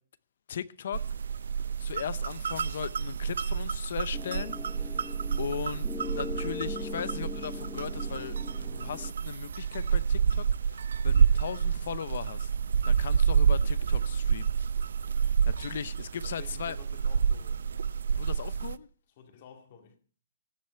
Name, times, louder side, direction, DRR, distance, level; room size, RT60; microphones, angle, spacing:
voice 1, 0.5-1.0 1.8-4.6 4.8-5.1 5.4-12.5 12.8-14.5 15.2-16.8 18.1-18.9, left 8 dB, 55° left, 0.7 m, -38 dB
sound 1, 0.9-18.7, right 6 dB, 85° right, 0.6 m, -28 dB
sound 2, 4.1-9.1, left 5 dB, 5° left, 0.7 m, -41 dB
voice 2, 16.2-17.7 19.2-20.0, left 6 dB, 35° left, 2.2 m, -52 dB
16.5 x 9.7 x 4.5 m
hypercardioid pair, 170°, 0 cm